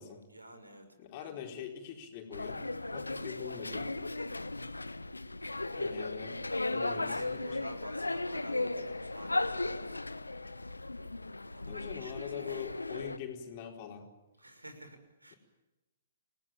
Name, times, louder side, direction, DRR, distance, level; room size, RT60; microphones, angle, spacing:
voice 1, 0.3-0.9 1.2-1.4 6.6-10.0 11.5-13.0 14.4-15.4, right 1 dB, 80° right, 9 dB, 6.2 m, -51 dB
voice 2, 1.0-2.6 2.9-4.1 5.7-6.4 6.7-7.2 11.7-14.0, left 8 dB, 35° left, 2 dB, 4.5 m, -43 dB
sound 1, 2.3-13.2, left 2 dB, 80° left, 1.2 m, -36 dB
29.5 x 19.5 x 8.9 m, 1.0 s
figure-of-eight pair, 120°, 0 cm